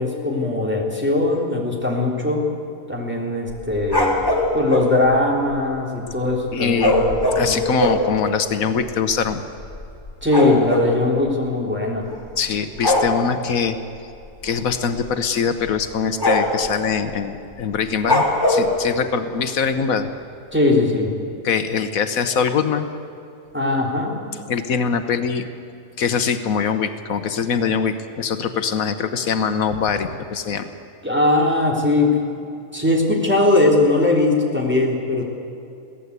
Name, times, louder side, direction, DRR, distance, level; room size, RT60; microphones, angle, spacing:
voice 1, 0.0-2.5 2.9-4.2 4.5-7.6 10.2-12.1 20.5-21.1 23.5-24.2 31.0-32.2 32.7-35.2, left 2 dB, 10° right, -2 dB, 3.5 m, -20 dB
sound 1, 3.5-4.9 6.8-8.1 8.8-8.9 9.1-9.3 9.6-10.9 12.0-12.4 12.8-13.1 14.5-14.7 15.1-15.2 15.7-15.8 16.2-16.7 18.0-18.7, left 1 dB, 15° left, 3.2 m, -20 dB
voice 2, 6.5-7.0 7.3-9.4 12.4-13.8 14.4-20.1 21.4-22.9 24.5-25.5 26.0-30.7, left 6 dB, 80° left, 9 dB, 1.4 m, -23 dB
22.5 x 17.0 x 8.2 m, 2.6 s
omnidirectional pair, 1.5 m